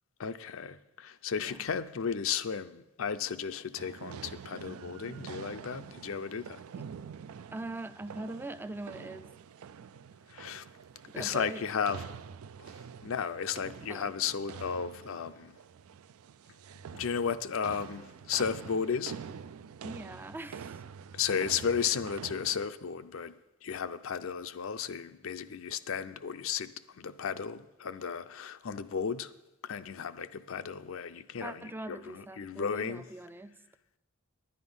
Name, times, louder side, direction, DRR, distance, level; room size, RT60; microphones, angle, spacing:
voice 1, 0.2-6.6 10.3-10.6 11.2-12.0 13.0-15.5 16.9-19.1 21.1-23.3 23.6-26.7 27.0-29.3 29.6-33.0, left 6 dB, 65° left, 0.5 m, -34 dB
voice 2, 1.4-1.7 6.8-6.9 7.5-9.3 11.1-11.7 13.9-14.2 19.8-20.8 31.4-33.6, right 2 dB, 10° right, 0.4 m, -42 dB
sound 1, 3.8-22.7, right 7 dB, 80° right, 0.4 m, -46 dB
10.5 x 9.8 x 5.4 m
head